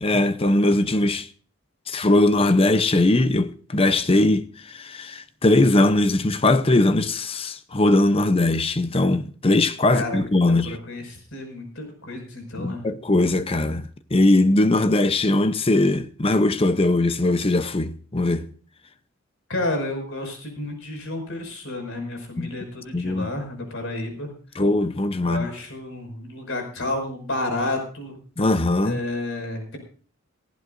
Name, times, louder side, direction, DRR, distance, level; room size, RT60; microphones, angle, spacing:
voice 1, 0.0-1.3 1.9-10.8 12.6-18.5 22.4-22.5 22.9-23.3 24.6-25.5 28.4-29.0, left 2 dB, 25° left, 0.7 m, -20 dB
voice 2, 10.5-12.9 19.5-24.3 25.2-28.2 28.8-29.8, left 2 dB, 60° left, 5.7 m, -31 dB
19.0 x 15.5 x 2.6 m
head